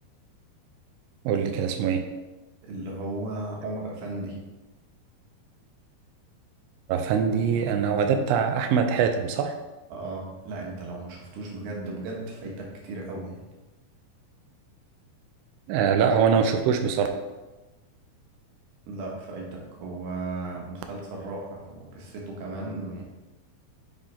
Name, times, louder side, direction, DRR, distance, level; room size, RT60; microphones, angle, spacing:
voice 1, 1.3-2.0 6.9-9.6 15.7-17.1, right 7 dB, 85° right, 5 dB, 2.0 m, -23 dB
voice 2, 2.6-4.4 9.9-13.5 18.9-23.0, right 2 dB, 70° right, -2 dB, 2.8 m, -35 dB
7.3 x 3.8 x 4.2 m, 1.1 s
omnidirectional pair, 4.5 m